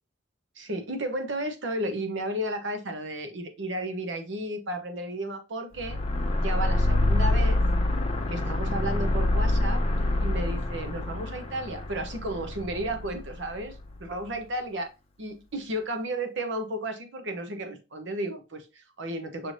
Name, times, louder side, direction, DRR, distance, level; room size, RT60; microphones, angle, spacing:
voice 1, 0.6-6.0 6.4-7.6 8.3-9.8 10.2-14.9 15.2-19.5, right 1 dB, 60° right, 7 dB, 0.9 m, -33 dB
sound 1, 5.7-14.1, left 1 dB, 30° left, 0.7 m, -26 dB
5.8 x 3.3 x 2.6 m, 0.28 s
head